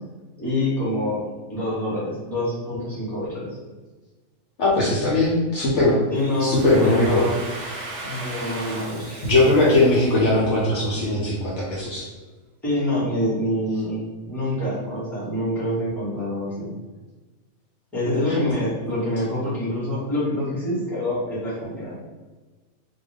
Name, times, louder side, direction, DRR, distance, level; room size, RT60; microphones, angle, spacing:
voice 1, 0.4-1.2 1.5-3.5 6.1-7.4 8.0-9.3 12.6-16.7 17.9-22.0, left 1 dB, ahead, -10 dB, 1.0 m, -26 dB
voice 2, 4.6-6.0 6.4-7.2 9.2-12.0, left 2 dB, 65° left, -5 dB, 0.8 m, -19 dB
Domestic sounds home sounds, 6.2-10.9, right 2 dB, 60° right, 0.7 m, -37 dB
2.5 x 2.2 x 3.3 m, 1.3 s
omnidirectional pair, 1.5 m